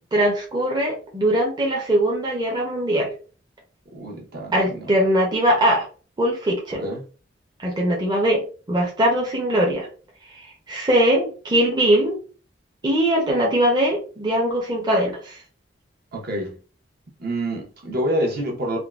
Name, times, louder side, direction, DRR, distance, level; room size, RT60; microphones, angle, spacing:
voice 1, 0.1-3.1 4.5-5.9 6.2-6.8 7.6-8.4 8.7-9.9 10.7-12.2 12.8-15.4, right 1 dB, 25° right, 0.6 m, -21 dB
voice 2, 3.9-4.9 6.8-7.0 16.1-16.6 17.2-18.8, right 1 dB, 55° right, 0.9 m, -27 dB
3.6 x 2.2 x 2.3 m
head